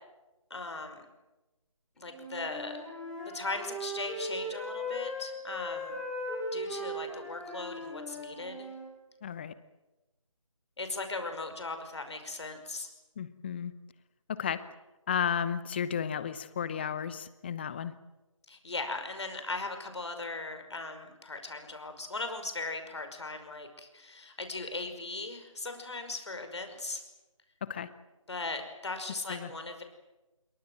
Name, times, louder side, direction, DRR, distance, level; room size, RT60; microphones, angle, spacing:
voice 1, 0.5-1.1 2.0-2.8 3.3-6.0 6.5-8.7 10.8-12.9 18.5-27.0 28.3-29.8, left 3 dB, 55° left, 7 dB, 5.5 m, -38 dB
Wind instrument woodwind instrument, 2.0-8.9, equal, 5° left, 6.0 m, -38 dB
voice 2, 9.2-9.5 13.2-13.7 14.3-14.6 15.1-17.9 27.6-27.9 29.3-29.5, left 8 dB, 20° left, 15 dB, 1.0 m, -33 dB
26.5 x 23.5 x 7.8 m, 1.0 s
figure-of-eight pair, 155°, 17 cm